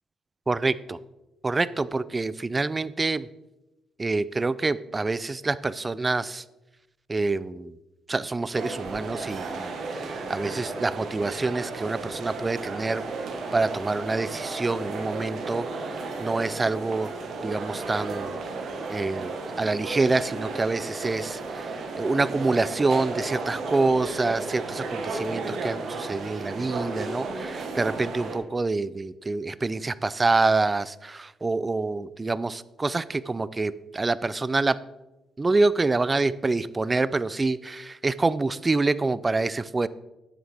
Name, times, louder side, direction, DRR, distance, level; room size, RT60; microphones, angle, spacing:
voice 1, 0.5-1.0 1.4-3.3 4.0-6.4 7.1-7.7 8.1-13.0 13.5-17.1 17.4-18.3 18.9-19.3 19.6-34.8 35.4-39.9, right 3 dB, 25° right, 17 dB, 0.4 m, -26 dB
sound 1, 8.5-28.4, right 3 dB, 70° right, 1.4 m, -34 dB
9.8 x 7.8 x 3.5 m, 1.0 s
cardioid pair, 80°, 0 cm